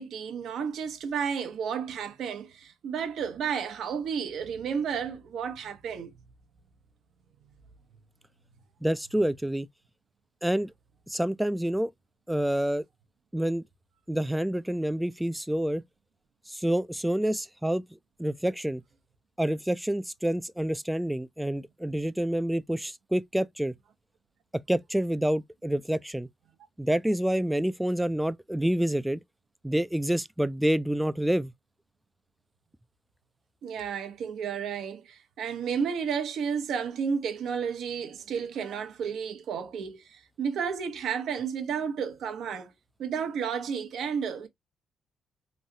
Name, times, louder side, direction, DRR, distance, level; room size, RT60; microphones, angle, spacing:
voice 1, 0.0-6.1 33.6-42.7 43.0-44.5, right 7 dB, 70° right, 0.7 m, -32 dB
voice 2, 8.8-9.7 10.4-10.7 11.1-11.9 12.3-12.8 13.3-13.6 14.1-15.8 16.5-17.8 18.2-18.8 19.4-23.7 24.7-26.3 26.8-29.2 29.6-31.5, right 1 dB, 5° right, 0.3 m, -28 dB
3.1 x 2.7 x 2.6 m
cardioid pair, 90°, 0 cm